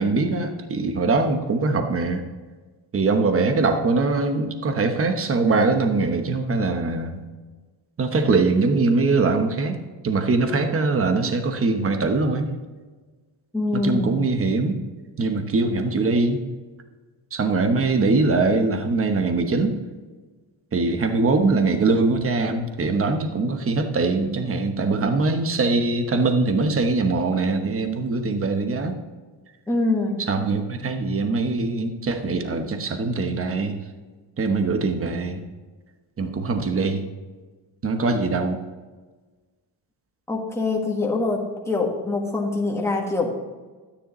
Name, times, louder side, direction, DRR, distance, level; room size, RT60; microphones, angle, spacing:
voice 1, 0.0-2.2 2.9-7.2 8.0-9.8 10.0-12.5 13.7-14.8 15.2-16.4 17.3-19.8 20.7-29.0 30.2-33.8 34.4-35.4 36.2-37.0 37.8-38.6, right 3 dB, 30° right, 6 dB, 1.1 m, -22 dB
voice 2, 13.5-14.2 29.7-30.2 40.3-43.4, left 3 dB, 5° left, -2 dB, 1.6 m, -24 dB
13.0 x 9.9 x 3.1 m, 1.3 s
cardioid pair, 145°, 45 cm